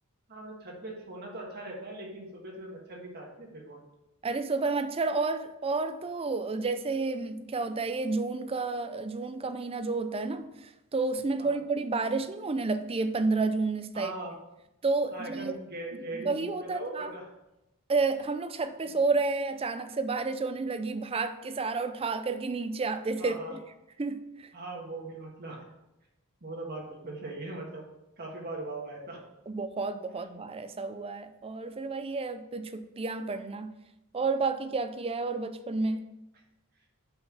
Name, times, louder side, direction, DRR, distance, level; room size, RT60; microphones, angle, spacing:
voice 1, 0.3-3.8 11.4-11.6 13.9-14.3 15.1-17.3 18.8-18.9 23.2-23.5 24.5-25.7 26.4-27.8 28.2-29.2, right 2 dB, 45° right, 1.5 m, -40 dB
voice 2, 4.2-14.1 14.8-15.6 16.1-17.1 17.9-23.6 24.0-24.5 29.5-33.8 34.1-36.1, right 3 dB, 25° right, 0.5 m, -30 dB
5.6 x 5.6 x 5.8 m
head